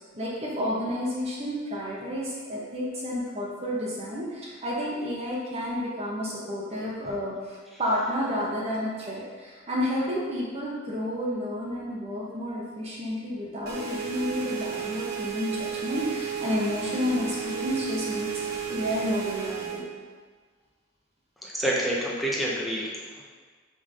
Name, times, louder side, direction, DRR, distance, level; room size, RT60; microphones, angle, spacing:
voice 1, 0.1-18.3 18.7-19.9, left 1 dB, 30° right, -5 dB, 1.1 m, -31 dB
sound 1, 13.7-19.8, right 7 dB, 55° right, 0.9 m, -33 dB
voice 2, 21.4-23.2, right 1 dB, ahead, -5 dB, 0.7 m, -28 dB
5.4 x 3.4 x 5.2 m, 1.5 s
head